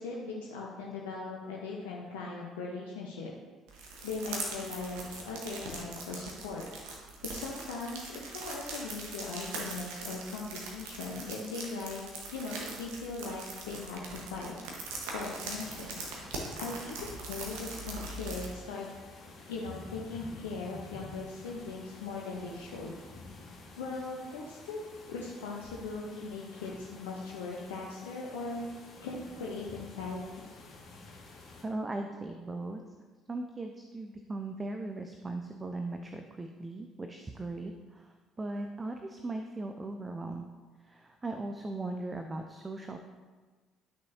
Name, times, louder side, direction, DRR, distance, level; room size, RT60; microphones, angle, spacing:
voice 1, 0.0-3.3 4.0-6.7 7.2-12.0 12.3-14.7 15.1-16.0 16.6-18.9 19.5-22.9 23.8-24.8 25.1-28.7 29.0-30.5, left 3 dB, 70° left, -3 dB, 0.8 m, -39 dB
sound 1, 3.7-18.5, right 3 dB, 65° right, 1.3 m, -41 dB
sound 2, 15.2-31.6, left 3 dB, 50° left, 2.0 m, -51 dB
voice 2, 31.6-32.8 33.3-40.5 40.8-43.0, right 2 dB, 25° right, 5 dB, 0.6 m, -38 dB
11.5 x 6.2 x 2.8 m, 1.4 s
figure-of-eight pair, 50°, 0 cm